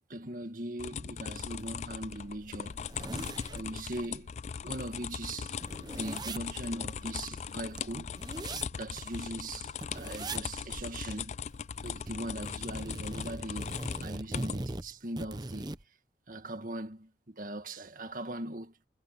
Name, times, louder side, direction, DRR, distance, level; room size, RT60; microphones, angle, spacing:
voice 1, 0.1-2.8 3.5-4.3 4.6-5.6 5.9-8.2 8.7-11.3 11.8-15.8 16.3-18.9, right 1 dB, 50° right, 1.9 m, -40 dB
sound 1, 0.8-14.6, left 7 dB, 40° left, 0.3 m, -39 dB
sound 2, 1.6-1.7 2.1-2.2 2.5-4.1 4.5-4.6 4.9-9.2 9.8-10.5 10.7-10.9 11.2-12.1 12.4-15.8, right 2 dB, 25° right, 0.9 m, -41 dB
head